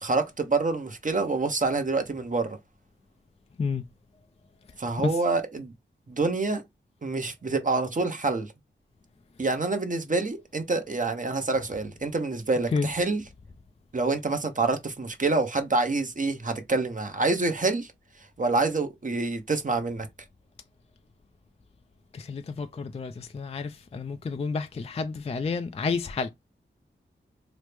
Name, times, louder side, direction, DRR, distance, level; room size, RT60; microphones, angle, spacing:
voice 1, 0.0-2.6 4.8-5.7 6.1-6.6 7.0-8.5 9.4-13.2 13.9-17.9 18.4-20.1, right 3 dB, 40° right, 0.7 m, -27 dB
voice 2, 22.1-26.3, left 4 dB, 30° left, 0.3 m, -30 dB
3.1 x 2.0 x 3.2 m
cardioid pair, 45°, 20 cm